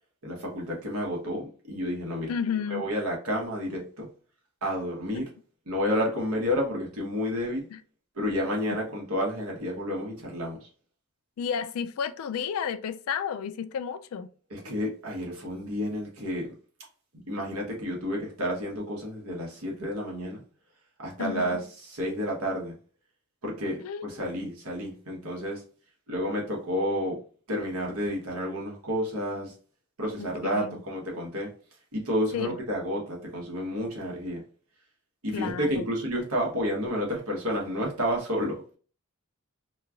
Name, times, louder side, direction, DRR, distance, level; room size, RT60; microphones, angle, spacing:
voice 1, 0.2-2.3 2.7-4.1 4.6-5.3 5.7-7.7 8.2-10.6 14.5-16.5 17.1-20.4 21.0-21.6 21.9-22.8 23.4-25.6 26.1-27.2 27.5-29.5 30.0-31.5 31.9-34.4 35.2-38.8, equal, 80° right, 1.1 m, -30 dB
voice 2, 2.3-2.9 5.1-5.3 7.7-7.8 11.4-14.3 21.2-21.6 23.8-24.3 30.2-30.8 32.3-32.6 35.3-35.9, left 7 dB, 75° left, 0.3 m, -32 dB
3.0 x 2.3 x 2.3 m
head